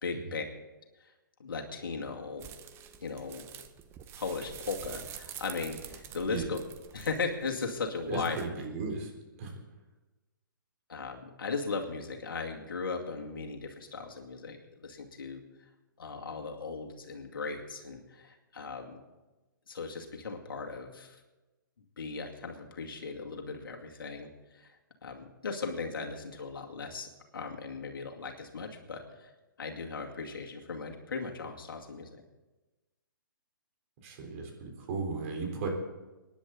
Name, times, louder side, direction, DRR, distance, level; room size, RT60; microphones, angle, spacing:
voice 1, 0.0-0.4 1.0-1.1 1.4-2.5 3.0-3.4 4.2-6.6 6.9-8.4 10.9-15.7 16.0-19.0 19.7-21.2 22.0-24.8 25.0-29.3 29.6-32.1, left 4 dB, 75° left, 1 dB, 2.4 m, -37 dB
sound 1, 2.4-8.5, right 9 dB, 20° right, 0.9 m, -47 dB
voice 2, 8.1-9.1 9.4-9.5 34.0-35.7, right 4 dB, 40° right, 1 dB, 3.9 m, -35 dB
24.5 x 10.5 x 4.0 m, 1.1 s
hypercardioid pair, 135°, 12 cm